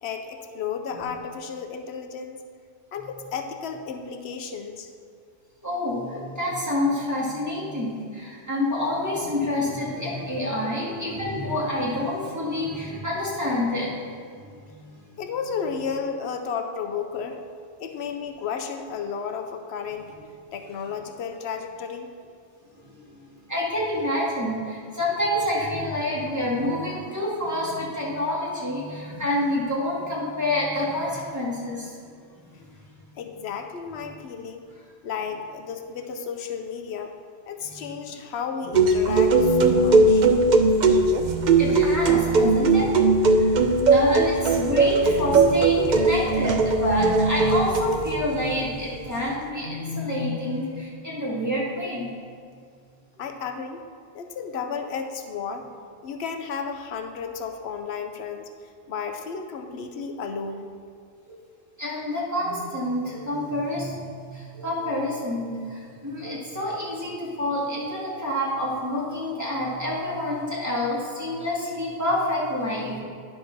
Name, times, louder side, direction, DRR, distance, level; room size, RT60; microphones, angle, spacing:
voice 1, 0.0-2.4 2.9-4.9 15.2-17.4 17.8-20.1 20.5-22.1 33.2-34.6 35.0-37.1 37.5-40.3 53.2-53.8 54.1-55.7 56.0-58.5 58.9-60.7, left 6 dB, 85° left, 5 dB, 0.9 m, -33 dB
voice 2, 5.6-14.9 22.9-23.1 23.5-32.0 37.6-37.9 41.6-52.1 61.8-73.0, left 1 dB, 15° right, -7 dB, 2.1 m, -28 dB
sound 1, 38.7-48.2, right 3 dB, 50° right, 0.6 m, -19 dB
10.0 x 4.3 x 5.9 m, 2.2 s
omnidirectional pair, 1.1 m